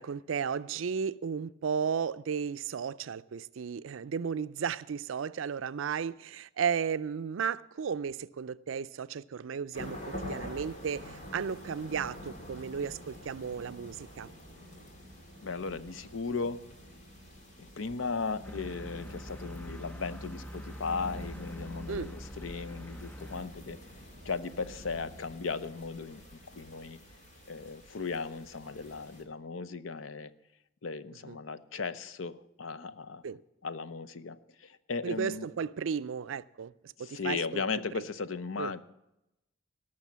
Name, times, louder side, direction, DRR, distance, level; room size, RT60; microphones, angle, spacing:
voice 1, 0.0-14.3 21.9-22.1 31.3-31.4 33.2-33.4 35.0-36.7 37.0-37.6 38.6-38.7, right 6 dB, 85° right, 0.4 m, -34 dB
sound 1, 9.7-29.2, equal, 40° left, 2.0 m, -47 dB
voice 2, 15.4-16.6 17.6-23.8 24.2-27.0 27.5-30.3 30.8-33.2 33.6-35.5 37.0-38.8, left 4 dB, 90° left, 0.7 m, -37 dB
sound 2, 18.4-23.4, equal, 10° left, 0.7 m, -44 dB
17.5 x 6.4 x 7.3 m
head